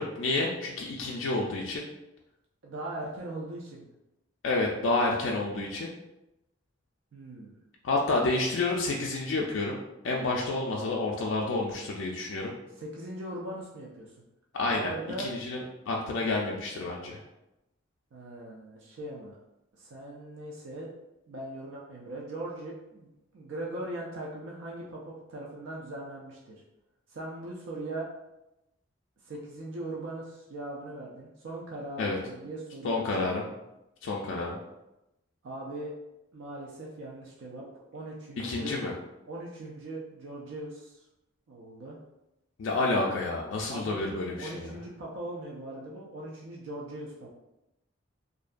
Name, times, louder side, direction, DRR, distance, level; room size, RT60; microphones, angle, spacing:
voice 1, 0.0-1.8 4.4-5.9 7.8-9.8 10.0-12.5 14.5-14.9 15.2-17.2 32.0-32.2 32.8-33.5 34.0-34.6 38.4-38.9 42.6-44.7, left 2 dB, 70° left, -2 dB, 0.3 m, -29 dB
voice 2, 2.6-3.9 7.1-7.6 12.8-14.2 14.7-15.3 18.1-19.4 19.7-20.9 21.3-26.6 27.1-28.1 29.2-33.0 35.4-35.9 36.3-38.8 39.3-41.0 41.5-42.0 43.7-44.0 44.4-47.3, right 1 dB, 75° right, -3 dB, 0.4 m, -40 dB
2.5 x 2.2 x 2.4 m, 0.92 s
head